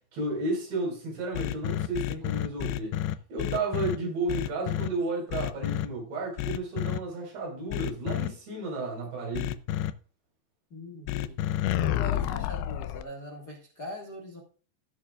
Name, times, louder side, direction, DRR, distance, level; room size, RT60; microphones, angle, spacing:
voice 1, 0.1-3.0 3.3-9.6, right 2 dB, 75° right, 6.7 m, -32 dB
sound 1, 1.3-4.0 4.3-4.9 5.3-5.9 6.4-7.0 7.7-8.3 9.3-9.9 11.1-13.0, left 13 dB, 80° left, 2.5 m, -29 dB
voice 2, 10.7-11.4 11.8-14.4, left 1 dB, 45° left, 1.3 m, -41 dB
16.5 x 7.4 x 2.4 m
omnidirectional pair, 5.0 m